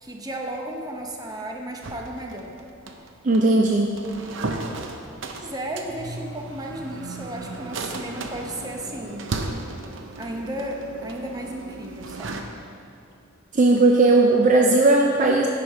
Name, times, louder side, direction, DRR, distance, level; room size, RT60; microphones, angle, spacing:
voice 1, 0.0-2.5 5.4-9.2 10.1-12.5, right 1 dB, 20° right, 1 dB, 0.8 m, -34 dB
sound 1, 1.8-12.4, right 2 dB, 80° right, 0.7 m, -35 dB
voice 2, 3.2-3.9 13.5-15.5, right 2 dB, 40° right, 1 dB, 0.4 m, -17 dB
9.6 x 5.3 x 4.7 m, 2.6 s
head